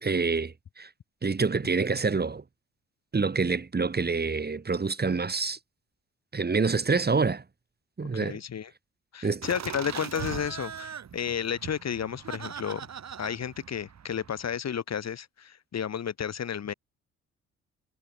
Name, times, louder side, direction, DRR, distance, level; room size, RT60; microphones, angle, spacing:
voice 1, 0.0-0.9 1.2-2.4 3.1-5.6 6.3-7.4 8.0-8.4 9.2-9.5, right 4 dB, 25° right, 2.5 m, -27 dB
voice 2, 8.1-8.7 9.1-12.9 13.2-16.7, left 8 dB, 45° left, 3.3 m, -32 dB
Laughter, 9.4-14.6, right 8 dB, 50° right, 7.3 m, -40 dB
figure-of-eight pair, 45°, 36 cm